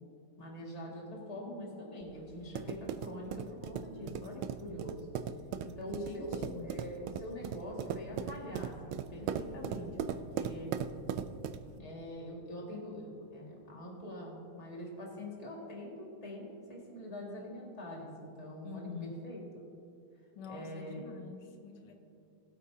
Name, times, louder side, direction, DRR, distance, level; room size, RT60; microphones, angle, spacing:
voice 1, 0.4-5.1 5.6-10.7 11.8-19.4 20.5-21.0, left 1 dB, 20° left, -3 dB, 1.9 m, -44 dB
sound 1, 2.0-11.8, right 8 dB, 75° right, 1.3 m, -39 dB
voice 2, 5.9-6.7 18.6-19.1 20.4-21.9, left 5 dB, 85° left, 4 dB, 1.9 m, -46 dB
20.5 x 8.3 x 2.8 m, 2.6 s
omnidirectional pair, 2.4 m